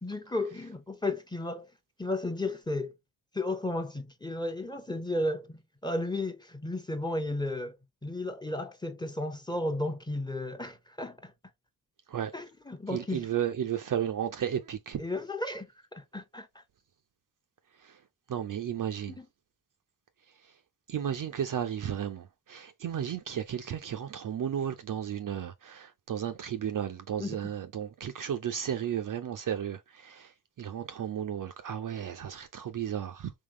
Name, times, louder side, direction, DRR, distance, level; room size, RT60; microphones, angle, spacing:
voice 1, 0.0-1.7 2.0-2.9 3.3-7.8 8.0-11.3 12.3-13.3 15.0-16.6 19.1-19.3 27.2-27.4, left 2 dB, 10° left, 0.9 m, -34 dB
voice 2, 12.9-15.0 17.8-18.0 18.3-19.2 20.9-30.3 30.6-33.3, right 9 dB, 40° right, 0.7 m, -34 dB
3.7 x 3.1 x 3.0 m
hypercardioid pair, 45°, 49 cm